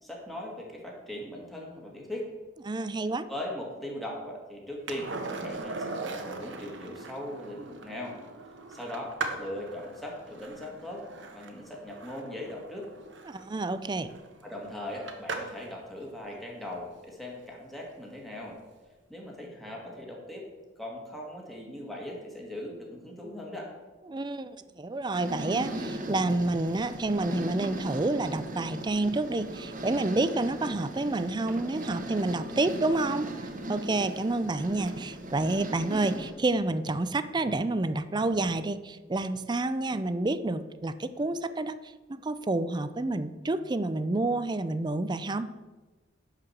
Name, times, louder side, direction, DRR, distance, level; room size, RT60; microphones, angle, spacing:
voice 1, 0.0-2.3 3.3-8.2 8.7-11.0 11.3-12.9 14.4-18.6 19.1-20.5 20.8-23.7, left 1 dB, ahead, -2 dB, 2.0 m, -39 dB
voice 2, 2.7-3.3 13.3-14.1 24.1-33.3 33.7-41.8 42.1-45.5, right 2 dB, 25° right, 13 dB, 0.4 m, -29 dB
Skateboard, 4.9-15.7 18.3-18.4, right 3 dB, 75° right, 1.2 m, -40 dB
sound 1, 25.1-36.3, right 1 dB, 45° right, 1.1 m, -38 dB
11.0 x 4.9 x 7.3 m, 1.2 s
head